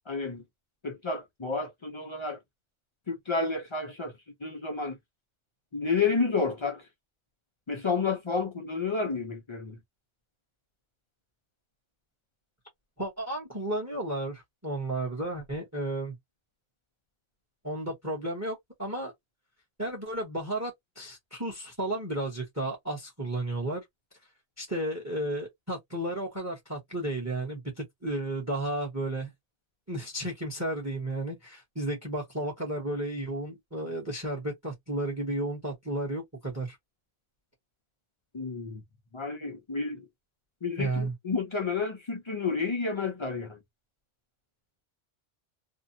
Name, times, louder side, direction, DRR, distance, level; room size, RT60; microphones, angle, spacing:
voice 1, 0.1-0.4 0.8-2.4 3.1-4.1 4.4-5.0 5.7-6.9 7.7-9.8 38.3-38.8 39.1-40.1 40.6-43.6, left 4 dB, 50° left, 0.3 m, -30 dB
voice 2, 13.0-16.1 17.6-19.1 19.8-23.8 24.6-29.3 29.9-36.8 40.8-41.1, right 1 dB, 15° right, 0.8 m, -33 dB
2.6 x 2.1 x 2.6 m
omnidirectional pair, 1.3 m